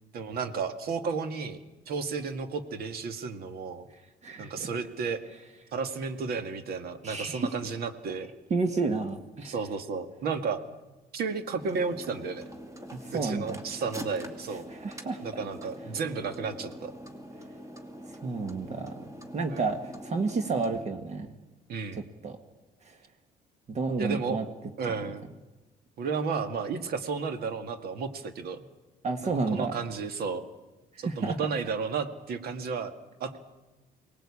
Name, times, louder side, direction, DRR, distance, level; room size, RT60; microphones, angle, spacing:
voice 1, 0.1-1.6 1.9-3.9 4.4-5.2 5.7-8.3 9.4-10.6 11.1-12.4 13.1-14.6 15.2-16.9 19.5-19.7 21.7-22.1 24.0-24.4 24.8-25.3 26.0-28.6 29.2-30.4 31.0-32.9 33.2-33.4, right 5 dB, 65° right, 9 dB, 2.0 m, -33 dB
voice 2, 4.2-4.7 7.0-7.5 8.5-9.5 12.9-13.6 14.7-15.2 18.2-19.1 19.3-21.3 22.2-22.4 22.9-23.0 23.7-24.5 29.0-29.7 30.9-31.4, right 4 dB, 40° right, 6 dB, 1.8 m, -30 dB
sound 1, 11.6-20.8, equal, 20° right, 2.4 m, -44 dB
23.5 x 19.0 x 8.6 m, 1.1 s
cardioid pair, 110°, 17 cm